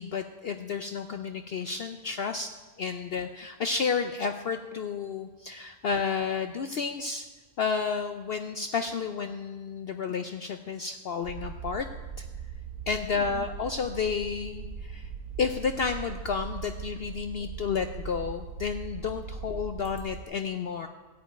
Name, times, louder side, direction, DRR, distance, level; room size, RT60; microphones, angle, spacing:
voice 1, 0.0-7.3 7.6-11.9 12.2-12.3 12.9-15.1 15.4-20.9, left 5 dB, 65° left, 7 dB, 0.6 m, -31 dB
sound 1, 11.2-20.2, right 6 dB, 75° right, 1.3 m, -40 dB
13.5 x 5.2 x 8.9 m, 1.3 s
omnidirectional pair, 1.5 m